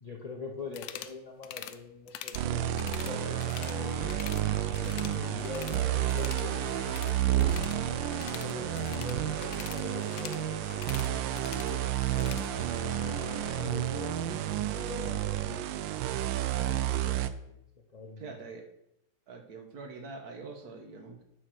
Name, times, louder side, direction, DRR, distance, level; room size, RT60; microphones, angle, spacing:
voice 1, 0.0-4.0 4.7-7.0 7.3-7.5 8.4-11.9 13.6-16.0 16.6-17.1 17.4-17.6 17.9-18.2, left 4 dB, 40° left, 0 dB, 0.5 m, -43 dB
sound 1, 0.7-1.2 1.4-1.8 2.1-2.5 2.8-3.8 4.0-4.4 4.7-5.8 6.1-12.5, left 11 dB, 70° left, 0.9 m, -44 dB
sound 2, 2.3-17.3, right 12 dB, 80° right, 1.3 m, -31 dB
Bowed string instrument, 3.1-14.1, left 7 dB, 90° left, 1.4 m, -46 dB
voice 2, 18.2-18.7 19.3-21.2, right 4 dB, 55° right, 4 dB, 1.7 m, -44 dB
9.7 x 4.6 x 6.2 m, 0.79 s
omnidirectional pair, 2.0 m